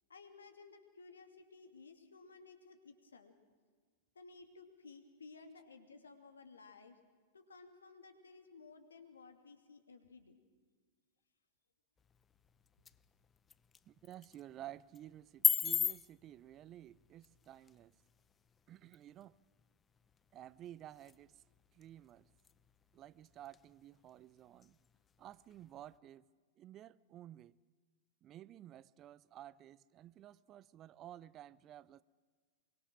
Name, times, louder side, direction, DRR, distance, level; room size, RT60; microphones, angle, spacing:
voice 1, 0.1-3.3 4.1-7.0 7.3-10.4, left 4 dB, 80° left, 2.6 m, -57 dB
sound 1, 12.0-26.0, left 6 dB, 20° left, 0.7 m, -42 dB
voice 2, 13.9-17.9 18.7-19.4 20.3-21.4 21.7-22.3 22.9-24.8 25.2-26.3 26.6-27.6 28.2-32.0, right 12 dB, 35° right, 0.6 m, -53 dB
24.5 x 23.5 x 6.3 m
figure-of-eight pair, 95°, 0 cm